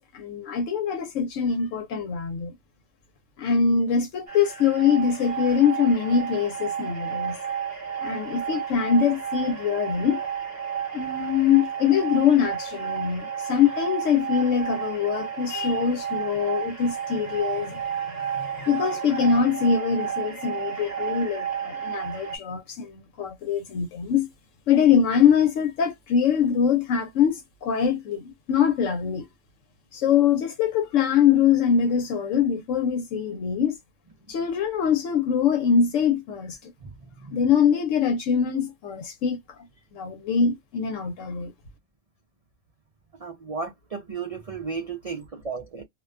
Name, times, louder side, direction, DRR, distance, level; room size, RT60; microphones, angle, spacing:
voice 1, 0.1-2.5 3.4-7.4 8.0-10.2 10.9-24.3 24.7-29.3 29.9-33.8 34.3-36.7 37.3-39.4 39.9-41.5, left 7 dB, 80° left, 1.0 m, -23 dB
sound 1, 4.3-22.4, right 8 dB, 15° right, 0.8 m, -32 dB
voice 2, 36.8-37.4 43.2-45.8, right 4 dB, 60° right, 0.3 m, -34 dB
2.4 x 2.2 x 2.3 m
omnidirectional pair, 1.3 m